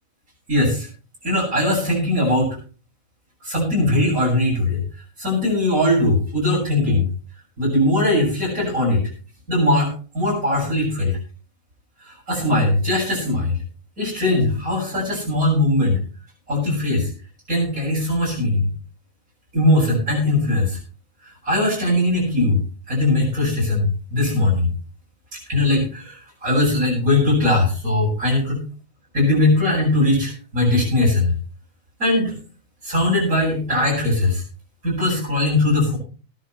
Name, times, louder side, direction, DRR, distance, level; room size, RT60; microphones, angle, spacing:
voice 1, 0.5-0.9 1.2-2.5 3.4-4.8 5.2-7.1 7.6-9.0 9.5-11.2 12.3-13.6 14.0-16.0 16.5-17.1 17.5-18.7 19.5-20.8 21.4-22.6 22.9-24.7 25.5-28.6 29.1-31.3 32.0-32.3 32.8-34.4 34.8-36.0, left 1 dB, 85° right, -7 dB, 7.7 m, -20 dB
20.5 x 10.5 x 3.2 m, 0.38 s
omnidirectional pair, 1.4 m